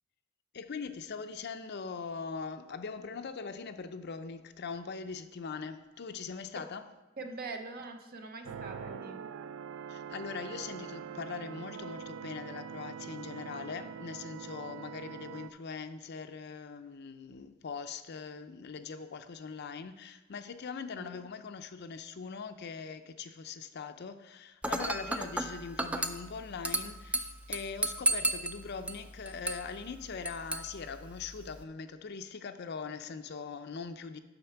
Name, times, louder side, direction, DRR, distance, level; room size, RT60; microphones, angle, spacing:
voice 1, 0.5-6.9 9.9-34.2, left 5 dB, 55° left, 0.5 m, -41 dB
voice 2, 7.2-9.2 20.9-21.2, right 3 dB, 50° right, 0.8 m, -43 dB
sound 1, 8.4-15.5, right 7 dB, 80° right, 0.4 m, -43 dB
Dishes pots and pans / Glass, 24.6-31.6, right 1 dB, 5° right, 0.4 m, -35 dB
7.8 x 5.8 x 5.8 m
head